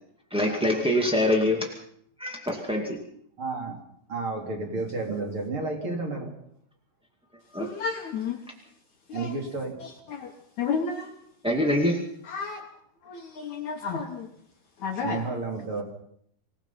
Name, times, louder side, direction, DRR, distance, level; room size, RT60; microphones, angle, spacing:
voice 1, 0.3-1.7 2.2-3.0 5.1-5.2 7.5-7.7 11.4-12.0, left 1 dB, 5° right, 0 dB, 0.7 m, -24 dB
voice 2, 3.4-3.8 4.1-6.3 9.1-9.8 15.0-15.8, right 3 dB, 35° right, 2 dB, 3.5 m, -31 dB
voice 3, 7.6-8.4 9.1-9.3 9.8-10.3 10.6-11.1 12.3-12.6 13.1-14.3 14.8-15.2, left 5 dB, 60° left, 4 dB, 2.2 m, -31 dB
26.0 x 17.5 x 5.8 m, 0.67 s
omnidirectional pair, 4.6 m